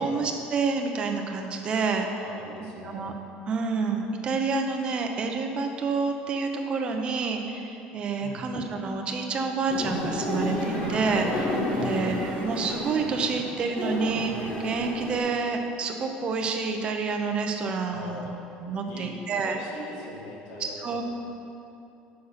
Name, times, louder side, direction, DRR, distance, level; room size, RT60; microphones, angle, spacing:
voice 1, 0.0-2.2 2.8-3.1 3.5-14.3 14.6-18.3 18.6-19.6 20.6-21.0, right 4 dB, 30° right, 3 dB, 0.7 m, -28 dB
voice 2, 2.2-3.0 8.2-8.5 11.7-12.0 17.9-18.4 18.8-21.0, left 1 dB, 80° left, -3 dB, 2.0 m, -41 dB
sound 1, 9.7-15.2, left 1 dB, 30° left, 2.0 m, -30 dB
7.3 x 6.4 x 5.7 m, 2.8 s
cardioid pair, 160°, 4 cm